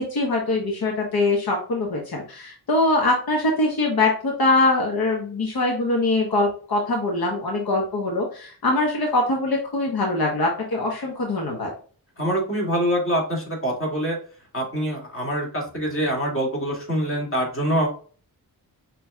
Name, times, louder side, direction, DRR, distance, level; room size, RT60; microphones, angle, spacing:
voice 1, 0.0-11.7, left 2 dB, 70° left, -1 dB, 1.2 m, -23 dB
voice 2, 12.2-14.2 14.5-17.9, equal, 35° left, -2 dB, 2.3 m, -25 dB
6.0 x 3.2 x 2.3 m, 0.42 s
wide cardioid pair, 100°, 38 cm